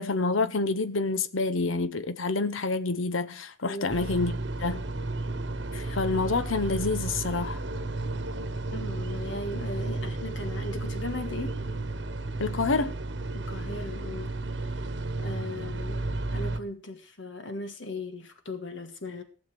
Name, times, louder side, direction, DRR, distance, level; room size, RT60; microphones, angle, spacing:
voice 1, 0.0-4.3 4.6-4.8 5.7-7.6 12.4-12.9, left 3 dB, 90° left, 0.8 m, -28 dB
voice 2, 3.6-4.1 8.7-11.6 13.3-14.3 14.6-14.7 15.2-19.2, left 2 dB, 75° left, 1.6 m, -38 dB
sound 1, 3.9-16.6, right 2 dB, 65° right, 1.1 m, -33 dB
15.5 x 7.2 x 5.9 m
head